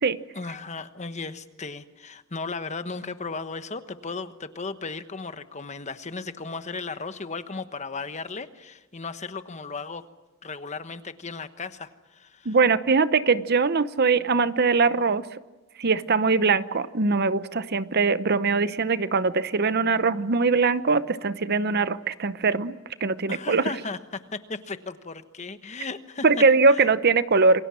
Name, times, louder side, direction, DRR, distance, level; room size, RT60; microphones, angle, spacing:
voice 1, 0.3-10.0 10.4-12.6 23.3-26.2 26.7-26.9, left 4 dB, 35° left, 10 dB, 1.2 m, -36 dB
voice 2, 12.5-15.2 15.8-22.7 23.0-23.6 26.2-27.6, right 4 dB, 50° right, 14 dB, 0.8 m, -21 dB
27.5 x 22.5 x 7.5 m, 1.1 s
head